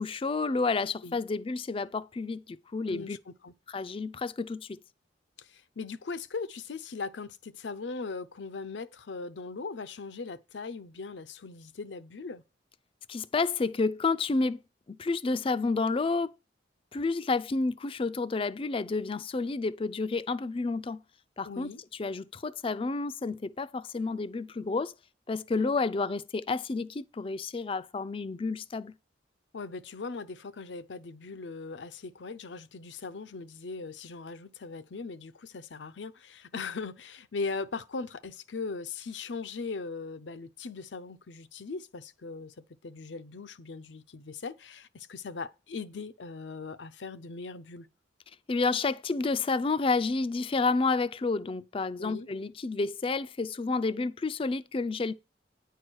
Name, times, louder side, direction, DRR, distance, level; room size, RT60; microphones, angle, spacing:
voice 1, 0.0-3.2 3.7-4.7 13.1-14.6 15.0-16.3 16.9-21.0 21.4-21.7 22.0-24.9 25.3-28.9 48.5-55.1, left 3 dB, 30° left, 0.4 m, -30 dB
voice 2, 2.9-3.5 5.4-12.4 21.4-21.8 25.6-25.7 29.5-47.9 52.0-52.3, left 4 dB, 75° left, 0.6 m, -39 dB
9.7 x 4.6 x 6.3 m
head